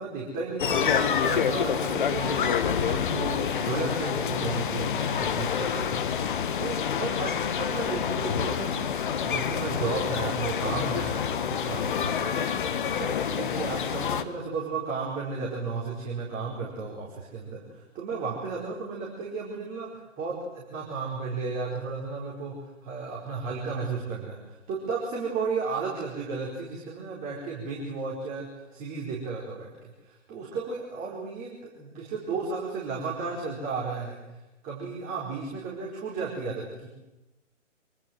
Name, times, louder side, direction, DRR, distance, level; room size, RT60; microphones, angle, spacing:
voice 1, 0.0-6.3 6.6-29.7 30.0-31.5 31.7-34.4 34.6-36.9, right 4 dB, 20° right, -5 dB, 4.9 m, -34 dB
sound 1, 0.6-14.2, left 7 dB, 40° left, 1.8 m, -27 dB
26.0 x 24.0 x 7.9 m, 1.0 s
figure-of-eight pair, 140°, 38 cm